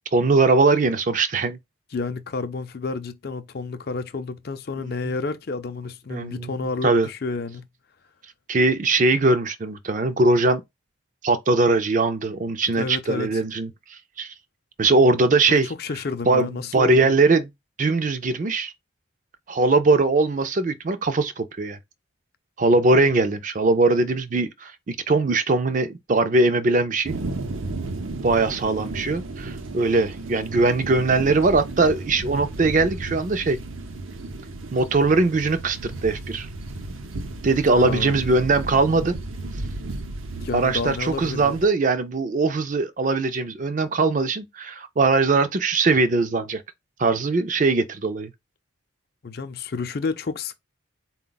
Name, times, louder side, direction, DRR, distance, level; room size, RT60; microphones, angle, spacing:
voice 1, 0.1-1.6 4.8-4.9 6.1-6.5 6.8-7.1 8.5-10.6 11.2-14.3 14.8-15.7 16.3-17.5 17.8-18.7 19.5-21.8 22.6-27.2 28.2-33.6 34.7-36.5 37.4-39.1 40.5-46.6 47.0-48.3, right 3 dB, 40° right, 0.4 m, -21 dB
voice 2, 1.9-7.7 12.8-13.4 15.5-17.2 37.7-38.2 40.4-41.6 49.2-50.5, left 4 dB, 50° left, 0.5 m, -30 dB
sound 1, 27.0-41.7, right 2 dB, 80° right, 0.7 m, -34 dB
4.2 x 2.2 x 3.9 m
head